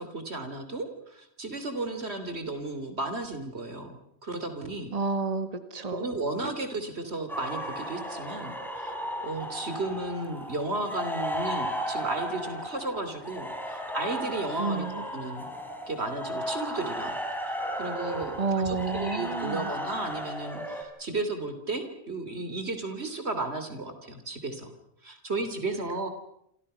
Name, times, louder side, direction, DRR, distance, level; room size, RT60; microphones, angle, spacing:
voice 1, 0.0-4.9 5.9-8.9 9.2-15.5 15.9-17.2 17.5-24.7 25.0-26.1, right 2 dB, 85° right, 8 dB, 3.5 m, -34 dB
voice 2, 4.9-6.1 14.6-15.0 18.4-19.7, right 4 dB, 35° right, 8 dB, 1.8 m, -30 dB
sound 1, 7.3-20.8, equal, ahead, 4.7 m, -35 dB
28.0 x 27.5 x 5.6 m, 0.74 s
omnidirectional pair, 1.1 m